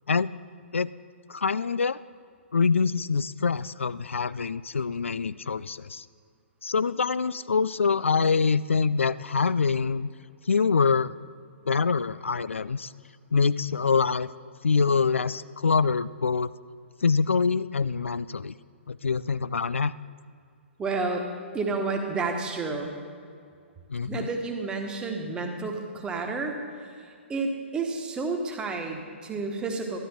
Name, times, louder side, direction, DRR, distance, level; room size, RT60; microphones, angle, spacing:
voice 1, 1.3-2.0 2.5-6.1 6.6-10.1 10.5-11.1 11.7-12.9 13.3-14.3 14.6-16.5 17.0-18.5 18.9-19.9 23.9-24.3, left 5 dB, 75° left, 17 dB, 0.3 m, -25 dB
voice 2, 20.8-21.3 21.5-22.9 24.0-30.0, right 3 dB, 15° right, 3 dB, 1.4 m, -31 dB
13.0 x 11.5 x 4.5 m, 2.3 s
figure-of-eight pair, 125°, 7 cm